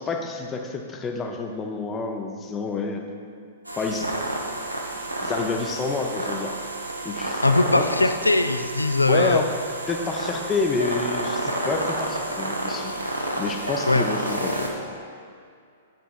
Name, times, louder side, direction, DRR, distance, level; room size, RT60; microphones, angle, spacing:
voice 1, 0.0-3.0 3.8-4.1 5.2-6.6 7.0-7.9 9.1-9.5 9.9-12.9 13.4-14.7, left 4 dB, 20° left, 3 dB, 0.5 m, -28 dB
sound 1, 3.6-14.7, right 1 dB, 85° right, 0.8 m, -30 dB
voice 2, 7.4-9.4 13.9-14.0, left 2 dB, 80° left, 10 dB, 0.3 m, -20 dB
8.7 x 7.8 x 2.4 m, 2.3 s
figure-of-eight pair, 105°, 0 cm